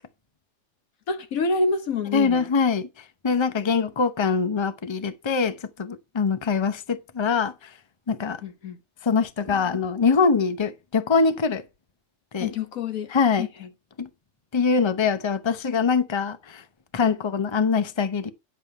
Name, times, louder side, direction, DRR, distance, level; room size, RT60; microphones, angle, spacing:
voice 1, 1.1-2.5 8.4-8.8 12.4-13.1 13.4-13.7, left 3 dB, 90° left, 1.6 m, -27 dB
voice 2, 2.1-2.9 3.2-7.7 8.1-8.4 9.0-11.6 12.3-12.5 13.1-13.5 14.0-14.1 14.5-16.6 16.9-18.3, left 5 dB, 25° left, 0.8 m, -23 dB
10.5 x 7.3 x 4.4 m
omnidirectional pair, 1.4 m